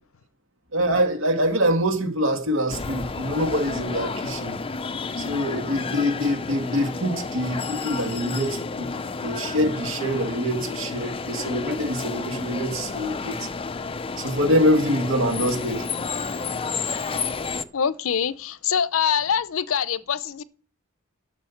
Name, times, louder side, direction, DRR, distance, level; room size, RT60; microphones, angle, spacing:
voice 1, 0.7-4.6 5.2-8.9 9.2-13.5 14.2-15.9, equal, 80° right, 2.0 m, -25 dB
sound 1, 2.7-17.6, left 4 dB, 25° left, 0.5 m, -31 dB
voice 2, 17.7-20.4, left 7 dB, 75° left, 0.6 m, -24 dB
12.0 x 6.3 x 7.2 m
head